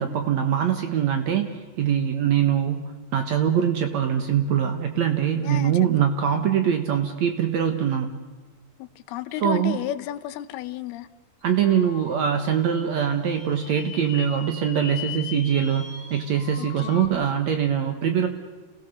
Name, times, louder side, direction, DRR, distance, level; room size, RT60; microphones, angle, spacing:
voice 1, 0.0-8.1 9.4-9.8 11.4-18.3, right 8 dB, 60° right, 6 dB, 2.1 m, -23 dB
voice 2, 5.4-5.8 8.8-11.1 16.6-17.0, left 12 dB, 80° left, 13 dB, 2.8 m, -33 dB
sound 1, 11.4-17.1, left 7 dB, 55° left, 3.5 m, -40 dB
29.0 x 17.0 x 6.7 m, 1.4 s
omnidirectional pair, 4.5 m